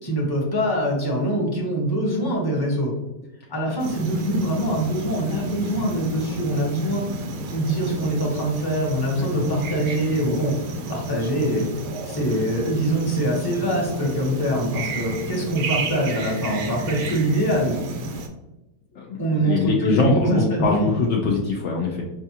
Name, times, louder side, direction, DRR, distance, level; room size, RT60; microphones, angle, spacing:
voice 1, 0.0-2.9 3.5-7.0 7.5-10.5 10.9-11.7 12.0-17.8 19.2-20.9, right 1 dB, 20° left, -2 dB, 0.7 m, -24 dB
sound 1, 3.8-18.3, right 2 dB, 80° right, 1.2 m, -32 dB
voice 2, 18.9-22.0, left 4 dB, 80° left, -1 dB, 0.6 m, -23 dB
5.4 x 2.4 x 2.8 m, 1.0 s
omnidirectional pair, 1.8 m